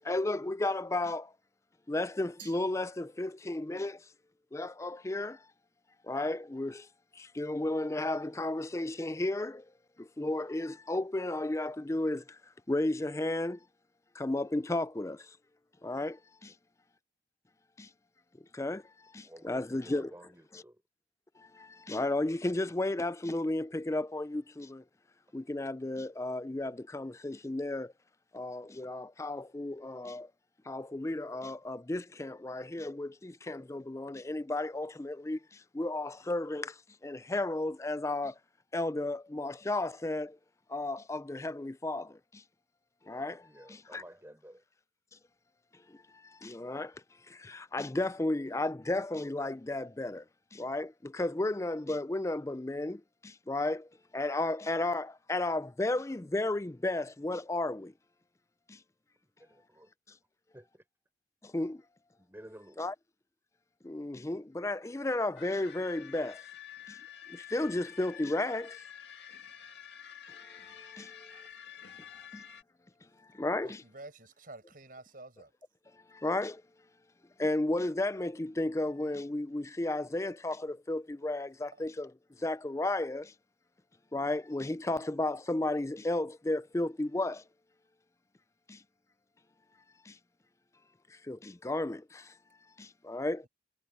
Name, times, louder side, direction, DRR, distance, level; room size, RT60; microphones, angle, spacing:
voice 1, 0.0-1.3 1.9-4.0 4.5-5.4 6.1-6.9 7.2-9.6 10.0-12.2 12.7-13.6 14.2-15.2 15.8-16.2 16.4-16.5 17.8-17.9 18.5-18.8 19.1-20.1 21.6-24.8 25.3-27.9 28.3-30.3 30.7-35.4 35.7-36.7 37.0-38.3 38.7-40.4 40.7-42.1 43.1-43.4 43.7-44.0 46.4-46.9 47.4-50.2 50.5-53.9 54.1-57.9 61.5-61.8 62.8-62.9 63.8-66.4 67.3-68.8 71.0-71.1 73.4-73.8 76.1-76.6 77.4-82.1 82.4-83.3 84.1-87.4 88.7-88.8 90.1-90.2 91.3-92.2 92.8-93.4, left 2 dB, 15° left, 0.4 m, -33 dB
Glass, 2.4-3.6, right 12 dB, 90° right, 5.0 m, -55 dB
voice 2, 19.2-20.8 43.4-44.6 59.2-59.9 60.5-60.8 62.2-62.9, right 1 dB, 15° right, 4.0 m, -53 dB
sound 1, 65.4-72.6, left 9 dB, 70° left, 2.0 m, -49 dB
voice 3, 73.6-75.5 81.7-81.8, right 2 dB, 50° right, 6.8 m, -50 dB
head